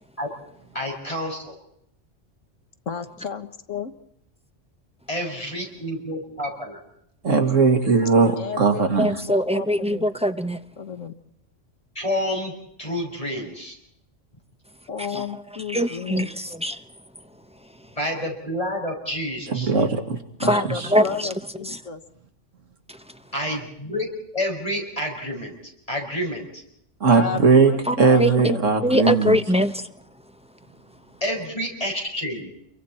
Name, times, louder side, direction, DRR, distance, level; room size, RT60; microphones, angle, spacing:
voice 1, 0.7-1.5 5.1-6.8 12.0-12.5 12.8-13.8 18.0-19.7 23.3-24.1 24.3-26.6 31.2-32.5, equal, 30° left, 0 dB, 5.7 m, -29 dB
voice 2, 2.9-3.9 8.4-10.1 10.8-11.1 14.9-16.3 20.4-22.0 27.2-29.2, left 6 dB, 90° left, 6 dB, 1.8 m, -33 dB
voice 3, 7.2-9.2 19.5-20.9 27.0-27.7 28.0-29.4, right 4 dB, 85° right, 5 dB, 2.4 m, -19 dB
voice 4, 9.0-10.6 15.1-15.4 15.7-16.8 20.5-20.6 20.9-21.3 21.7-21.8 27.9-28.6 28.8-29.9, equal, 5° right, 8 dB, 0.8 m, -22 dB
28.5 x 23.5 x 4.4 m, 0.76 s
omnidirectional pair, 1.3 m